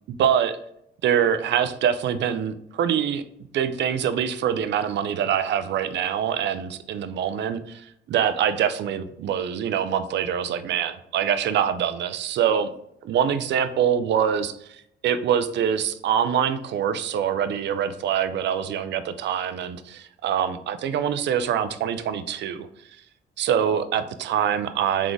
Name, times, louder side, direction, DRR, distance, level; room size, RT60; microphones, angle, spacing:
voice 1, 0.1-0.6 1.0-3.2 3.5-12.7 13.0-22.7 23.4-25.1, right 8 dB, 65° right, 11 dB, 0.5 m, -24 dB
3.9 x 3.6 x 3.2 m, 0.74 s
cardioid pair, 90°, 20 cm